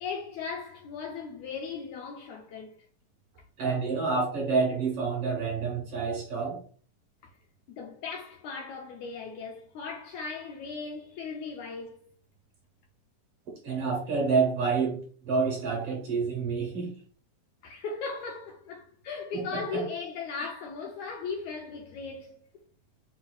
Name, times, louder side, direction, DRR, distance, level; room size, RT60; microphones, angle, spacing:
voice 1, 0.0-2.8 7.2-7.4 7.7-12.0 17.6-22.4, left 4 dB, 85° left, 1.6 m, -37 dB
voice 2, 3.6-6.6 13.6-15.0 15.2-16.9 19.3-19.4 19.7-19.8, right 4 dB, 60° right, 1.5 m, -28 dB
5.3 x 4.0 x 2.2 m
omnidirectional pair, 3.9 m